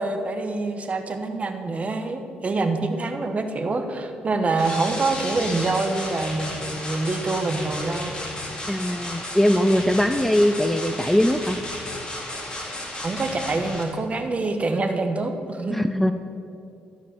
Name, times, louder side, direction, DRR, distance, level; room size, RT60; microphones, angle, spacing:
voice 1, 0.0-8.1 13.0-15.9, right 3 dB, 40° right, 6 dB, 1.1 m, -26 dB
sound 1, 4.6-13.8, left 1 dB, 25° left, 2.4 m, -33 dB
voice 2, 8.7-11.6 15.7-16.1, equal, 5° left, 9 dB, 0.4 m, -21 dB
13.0 x 5.2 x 6.8 m, 2.7 s
cardioid pair, 75°, 4 cm